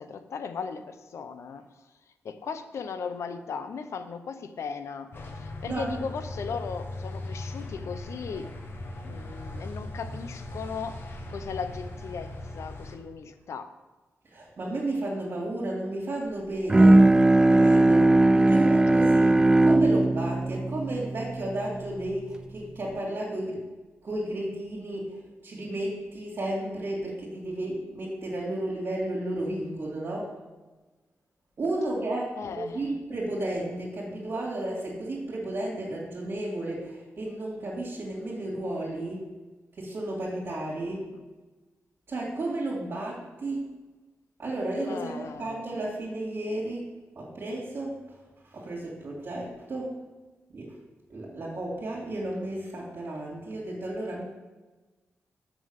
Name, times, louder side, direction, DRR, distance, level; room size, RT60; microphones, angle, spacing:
voice 1, 0.0-1.7 2.2-8.5 8.8-11.0 11.3-13.7 32.4-32.9 41.1-41.2 44.9-45.7, left 5 dB, 80° left, 10 dB, 0.7 m, -37 dB
sound 1, 5.1-12.9, left 2 dB, 50° left, 1.4 m, -38 dB
voice 2, 5.6-6.0 14.2-17.1 17.5-23.6 24.0-30.4 31.6-39.3 39.8-41.1 42.1-43.8 44.4-48.0 48.4-50.0 50.5-50.8 51.1-54.2, right 1 dB, 55° right, -7 dB, 2.8 m, -33 dB
Bowed string instrument, 16.7-22.1, right 2 dB, 15° right, 0.4 m, -19 dB
6.3 x 6.3 x 7.4 m, 1.2 s
cardioid pair, 85°, 5 cm